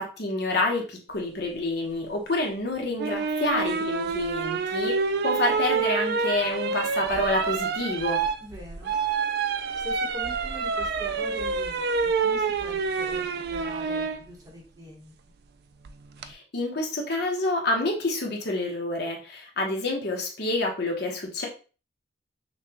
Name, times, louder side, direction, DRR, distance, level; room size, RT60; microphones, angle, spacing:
voice 1, 0.0-4.9 5.2-8.2 16.2-21.5, left 2 dB, 55° left, 0 dB, 1.0 m, -28 dB
sound 1, 3.0-14.2 15.9-16.3, right 5 dB, 55° right, 0.3 m, -27 dB
voice 2, 8.4-8.9 9.8-15.1, equal, 20° right, -1 dB, 1.0 m, -43 dB
5.7 x 2.2 x 2.8 m, 0.35 s
head